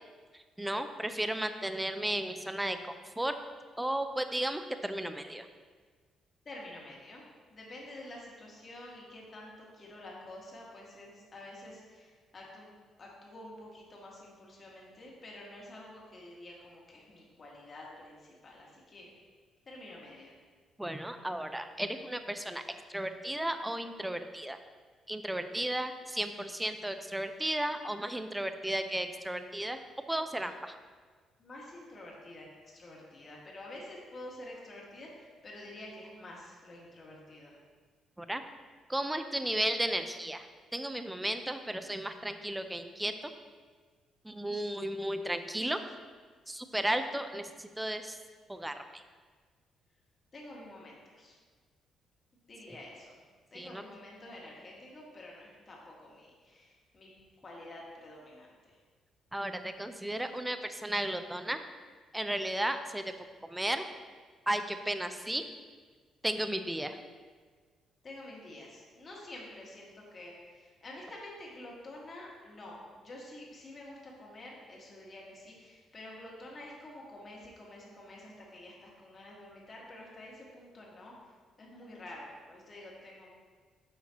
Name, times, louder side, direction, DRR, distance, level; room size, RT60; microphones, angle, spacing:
voice 1, 0.3-3.3 3.8-5.5 20.8-22.6 22.9-24.6 25.1-29.8 30.1-30.8 38.2-38.4 38.9-40.5 40.7-43.1 44.2-45.8 46.5-48.2 48.5-49.0 52.7-52.8 53.5-53.8 59.3-61.6 62.1-63.0 63.4-63.9 64.5-65.4 66.2-67.0, right 1 dB, 10° right, 8 dB, 0.5 m, -34 dB
voice 2, 6.5-7.2 7.5-12.7 13.0-19.1 19.7-20.3 31.4-37.5 50.3-51.4 52.5-53.2 53.5-57.1 57.4-58.8 68.0-83.3, left 1 dB, 40° left, -3 dB, 1.9 m, -49 dB
8.6 x 5.7 x 3.0 m, 1.5 s
cardioid pair, 80°, 0 cm